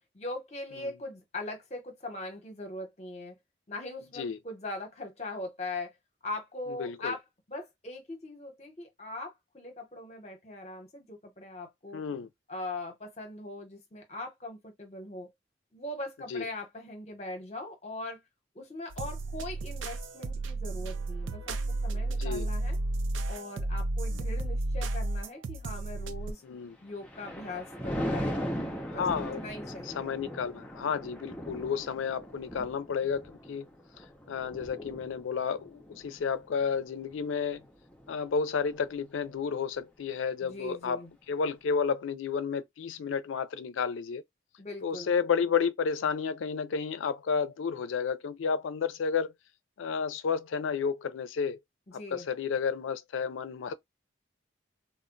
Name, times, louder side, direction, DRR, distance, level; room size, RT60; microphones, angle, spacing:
voice 1, 0.1-3.4 3.7-5.9 6.2-7.2 7.5-12.0 12.5-15.3 15.7-18.2 18.5-22.8 23.3-26.4 26.8-29.1 29.3-30.1 40.4-41.1 44.6-45.1 51.9-52.3, left 2 dB, 35° left, 0.8 m, -40 dB
voice 2, 6.8-7.1 11.9-12.3 16.3-16.4 22.2-22.5 26.4-26.7 29.0-29.4 29.9-33.7 34.3-37.6 38.1-41.0 41.3-44.2 44.8-49.3 49.8-51.6 52.1-53.7, left 6 dB, 90° left, 0.4 m, -31 dB
sound 1, 18.9-26.3, right 2 dB, 85° right, 0.4 m, -32 dB
Thunder, 26.7-38.2 38.7-39.0, equal, 5° left, 0.5 m, -39 dB
2.1 x 2.0 x 3.7 m
head